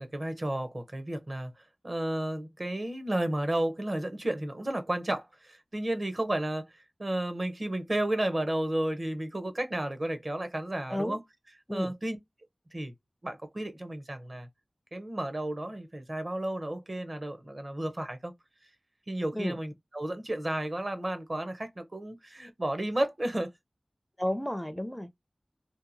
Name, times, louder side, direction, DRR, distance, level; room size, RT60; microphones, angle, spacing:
voice 1, 0.0-6.7 7.0-11.2 11.7-12.2 12.7-12.9 13.2-14.5 14.9-18.3 19.1-23.5, right 1 dB, 45° right, 0.7 m, -32 dB
voice 2, 24.2-25.3, left 1 dB, 10° left, 0.4 m, -32 dB
2.8 x 2.3 x 2.6 m
wide cardioid pair, 60°, 0 cm